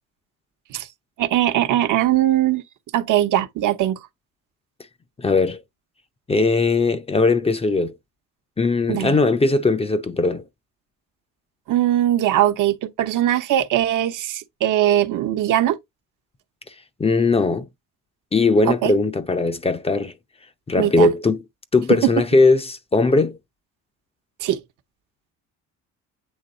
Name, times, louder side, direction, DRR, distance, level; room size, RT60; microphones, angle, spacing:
voice 1, 1.2-2.6 2.9-4.0 8.9-9.2 11.7-15.8 18.7-18.9 20.8-21.1 21.9-22.1 24.4-24.6, right 12 dB, 70° right, 0.9 m, -20 dB
voice 2, 5.2-5.6 6.3-7.9 8.6-10.4 17.0-17.7 18.3-20.1 20.7-21.4 21.7-23.4, left 3 dB, 20° left, 0.5 m, -19 dB
8.1 x 3.0 x 3.9 m
cardioid pair, 120°, 32 cm